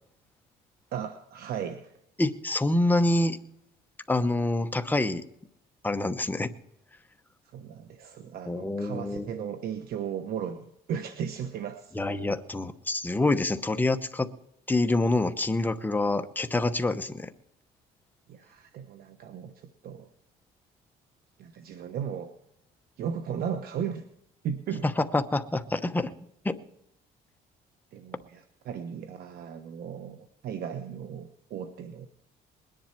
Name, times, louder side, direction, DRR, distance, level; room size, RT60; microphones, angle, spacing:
voice 1, 0.9-1.9 7.5-11.9 18.3-20.1 21.4-22.3 23.0-24.0 24.4-24.9 27.9-32.1, right 8 dB, 65° right, 8 dB, 1.1 m, -36 dB
voice 2, 2.2-3.4 4.1-5.3 5.8-6.5 8.5-9.3 11.9-14.3 14.7-17.3 25.0-26.1 26.4-26.6, left 2 dB, 10° left, 8 dB, 0.9 m, -26 dB
20.5 x 10.5 x 4.5 m, 0.77 s
cardioid pair, 110°, 17 cm